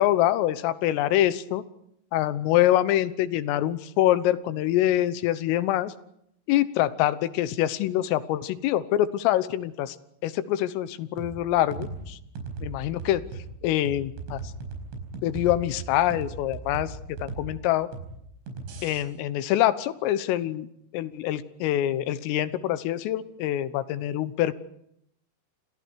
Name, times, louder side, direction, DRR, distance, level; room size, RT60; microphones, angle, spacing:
voice 1, 0.0-1.6 2.1-5.9 6.5-10.0 10.2-12.2 12.6-13.2 13.6-14.4 15.2-16.9 17.2-17.9 18.8-20.7 20.9-24.5, left 13 dB, 90° left, 14 dB, 3.7 m, -25 dB
sound 1, 11.2-19.0, right 3 dB, 75° right, 7.1 m, -38 dB
29.0 x 27.0 x 4.8 m, 0.74 s
omnidirectional pair, 5.7 m